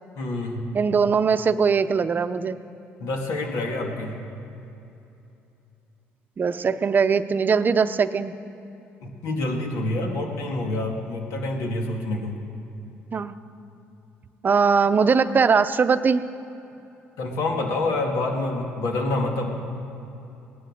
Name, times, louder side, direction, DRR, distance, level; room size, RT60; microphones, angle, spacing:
voice 1, 0.2-0.7 3.0-4.2 9.0-12.3 17.2-19.5, left 2 dB, 75° left, 1 dB, 2.1 m, -27 dB
voice 2, 0.7-2.6 6.4-8.3 13.1-13.3 14.4-16.2, right 5 dB, 40° right, 11 dB, 0.7 m, -21 dB
18.5 x 10.5 x 6.6 m, 2.8 s
supercardioid pair, 75°, 5 cm